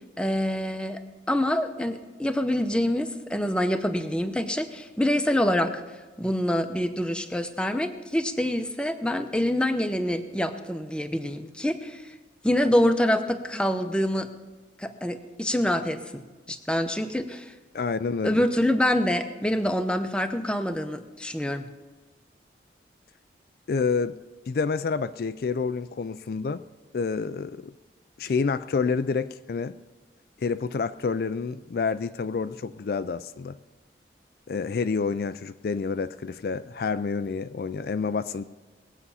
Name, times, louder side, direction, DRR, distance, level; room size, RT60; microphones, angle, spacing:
voice 1, 0.2-1.0 1.3-5.8 6.2-12.1 12.4-14.3 14.8-17.5 18.2-21.7, left 1 dB, 5° left, 7 dB, 0.7 m, -26 dB
voice 2, 17.7-18.4 23.7-24.2 24.5-26.6 26.9-27.7 28.2-29.8 30.4-33.6 34.5-38.4, left 5 dB, 55° left, 12 dB, 0.3 m, -28 dB
20.0 x 8.2 x 5.6 m, 1.2 s
head